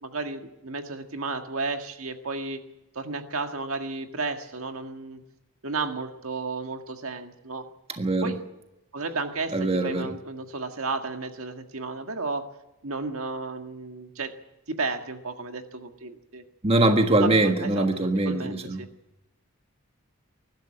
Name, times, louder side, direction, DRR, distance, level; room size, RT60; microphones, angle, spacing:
voice 1, 0.0-2.6 3.0-5.2 5.6-7.7 8.2-8.4 8.9-12.5 12.8-14.3 14.7-16.4 17.2-18.9, right 3 dB, 70° right, 6 dB, 1.8 m, -33 dB
voice 2, 7.9-8.3 9.5-10.1 16.6-18.9, right 2 dB, 25° right, 5 dB, 1.5 m, -23 dB
21.5 x 12.0 x 9.8 m, 0.96 s
head